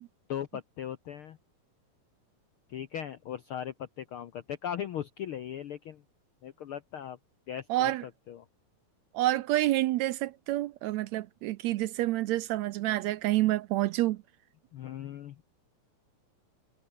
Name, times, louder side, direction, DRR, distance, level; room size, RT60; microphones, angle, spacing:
voice 1, 0.3-1.4 2.7-6.0 6.4-7.2 7.5-8.4 14.7-15.4, left 9 dB, 70° left, 1.2 m, -38 dB
voice 2, 7.7-8.0 9.1-14.2, right 16 dB, 80° right, 1.7 m, -28 dB
omnidirectional pair, 3.6 m